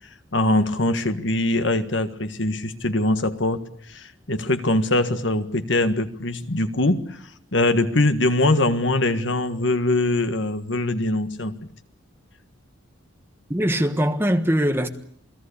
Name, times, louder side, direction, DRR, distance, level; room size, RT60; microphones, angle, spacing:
voice 1, 0.3-7.2 7.5-11.5, left 2 dB, 60° left, 1.7 m, -22 dB
voice 2, 13.5-14.9, equal, 10° right, 1.4 m, -21 dB
28.5 x 18.5 x 8.5 m
head